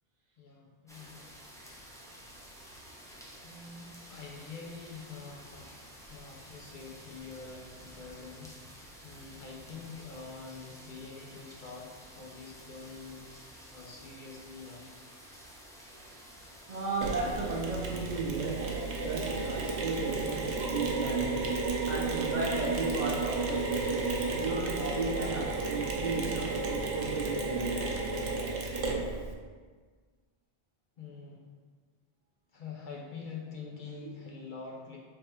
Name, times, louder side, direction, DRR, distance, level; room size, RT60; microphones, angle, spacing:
voice 1, 0.4-1.2 3.4-5.7 6.1-13.3 13.7-14.8 31.0-31.5 32.5-35.0, left 4 dB, 55° left, -1 dB, 0.7 m, -46 dB
sound 1, 0.9-20.5, equal, 5° left, 0.3 m, -51 dB
voice 2, 16.7-28.0 34.0-34.1, right 3 dB, 50° right, -3 dB, 0.6 m, -35 dB
Mechanisms, 17.0-29.3, right 3 dB, 80° right, 0.9 m, -32 dB
3.4 x 3.3 x 4.3 m, 1.5 s
omnidirectional pair, 1.1 m